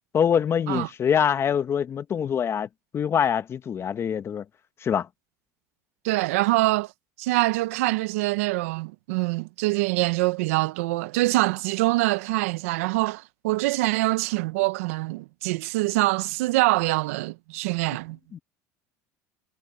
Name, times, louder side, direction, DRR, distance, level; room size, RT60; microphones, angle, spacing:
voice 1, 0.1-2.7 2.9-4.4 4.8-5.1 18.3-18.4, left 8 dB, 35° left, 1.4 m, -24 dB
voice 2, 6.0-6.9 7.2-18.2, right 20 dB, 85° right, 0.8 m, -24 dB
supercardioid pair, 105°, 7 cm